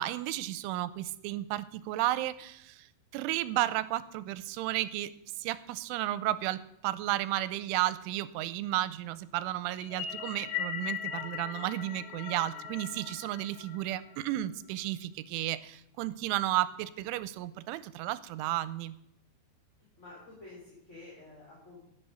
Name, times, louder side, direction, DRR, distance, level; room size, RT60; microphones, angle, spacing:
voice 1, 0.0-2.9 3.1-5.1 5.4-19.0, right 15 dB, 90° right, 16 dB, 3.1 m, -33 dB
sound 1, 9.8-14.3, left 8 dB, 70° left, 3.3 m, -39 dB
voice 2, 20.0-21.9, left 2 dB, 15° left, -6 dB, 4.4 m, -50 dB
12.0 x 9.2 x 6.8 m, 0.77 s
omnidirectional pair, 5.5 m